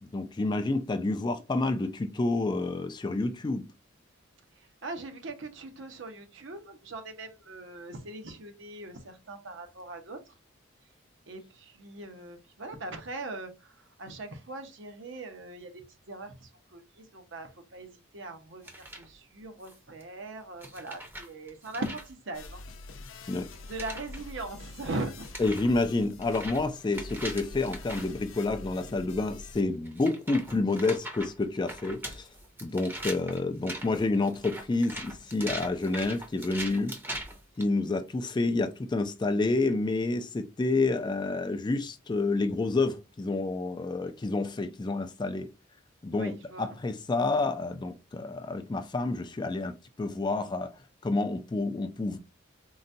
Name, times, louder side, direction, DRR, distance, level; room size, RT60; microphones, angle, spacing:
voice 1, 0.0-3.7 23.3-23.5 25.4-32.3 32.6-37.0 37.6-45.5 46.0-52.2, left 3 dB, 20° left, 0.3 m, -29 dB
voice 2, 4.5-10.3 11.3-22.6 23.7-25.3 46.1-46.7, right 2 dB, 65° right, 0.7 m, -40 dB
sound 1, 18.6-19.1 19.6-20.0 20.6-22.1 23.6-24.4 24.9-25.0 25.2-28.1 28.8-28.9 29.8-37.6, right 1 dB, 10° right, 0.6 m, -41 dB
sound 2, 22.3-29.6, left 2 dB, 75° left, 0.5 m, -45 dB
3.9 x 2.2 x 2.6 m
head